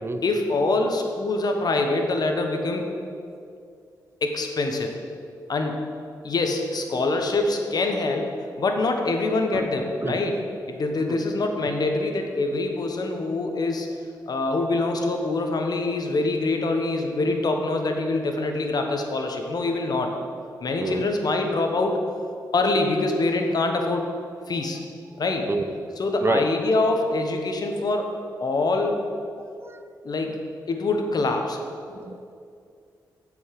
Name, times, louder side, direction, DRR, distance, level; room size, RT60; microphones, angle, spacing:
voice 1, 0.2-2.9 4.2-4.9 5.5-5.8 6.2-8.3 8.6-10.4 10.7-13.9 14.3-20.1 20.6-22.0 22.5-24.0 24.5-24.8 25.2-25.4 26.0-28.1 28.4-29.0 30.0-30.4 30.7-31.6, left 2 dB, 60° left, 4 dB, 1.2 m, -24 dB
voice 2, 29.4-29.8 30.3-30.4 31.9-32.3, right 3 dB, 30° right, 9 dB, 0.6 m, -28 dB
7.9 x 5.4 x 7.7 m, 2.4 s
cardioid pair, 60°, 8 cm